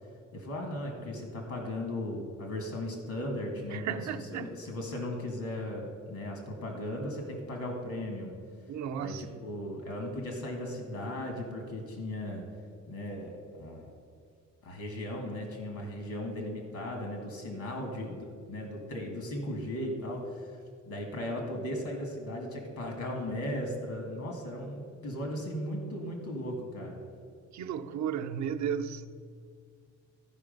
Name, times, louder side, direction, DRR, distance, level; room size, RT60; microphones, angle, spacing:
voice 1, 0.3-8.3 9.0-12.4 12.9-13.9 14.6-27.0, left 1 dB, 70° left, 2.0 m, -37 dB
voice 2, 3.7-4.5 8.7-9.4 27.5-29.1, right 8 dB, 65° right, 0.6 m, -34 dB
13.5 x 4.9 x 5.3 m
cardioid pair, 90°, 30 cm